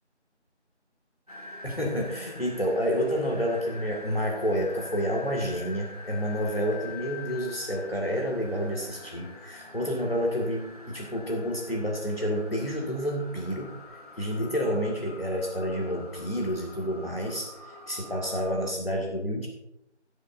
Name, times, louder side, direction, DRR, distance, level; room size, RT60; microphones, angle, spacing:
sound 1, 1.3-18.7, left 3 dB, 35° right, 1.1 m, -45 dB
voice 1, 1.6-13.7 14.2-19.5, equal, 55° left, 0 dB, 2.0 m, -29 dB
16.0 x 9.3 x 2.6 m, 0.82 s
figure-of-eight pair, 175°, 35 cm